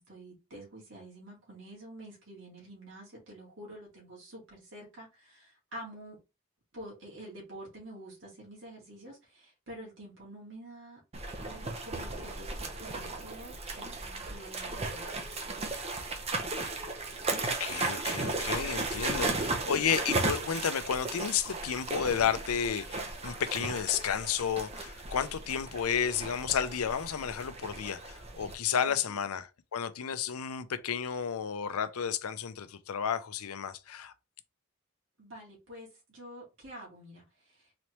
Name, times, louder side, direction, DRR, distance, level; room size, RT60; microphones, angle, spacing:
voice 1, 0.0-6.2 6.7-11.0 11.4-15.1 28.7-29.2 35.2-37.8, right 1 dB, 55° right, 2.1 m, -48 dB
sound 1, 11.1-28.5, right 3 dB, 30° right, 0.7 m, -36 dB
voice 2, 17.4-34.1, left 7 dB, 85° left, 0.5 m, -32 dB
4.0 x 3.2 x 3.0 m
head